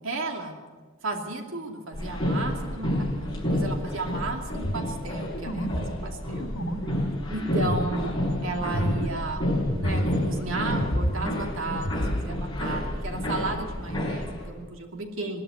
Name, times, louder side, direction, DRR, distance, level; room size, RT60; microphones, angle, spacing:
voice 1, 0.0-0.6 1.0-6.5 7.3-9.4 9.7-15.4, right 2 dB, 75° right, 3 dB, 2.7 m, -34 dB
sound 1, 1.9-14.5, left 1 dB, 20° left, 5.6 m, -30 dB
sound 2, 4.6-10.4 10.6-12.3, equal, 75° left, 2.6 m, -31 dB
20.5 x 13.0 x 9.6 m, 1.4 s
head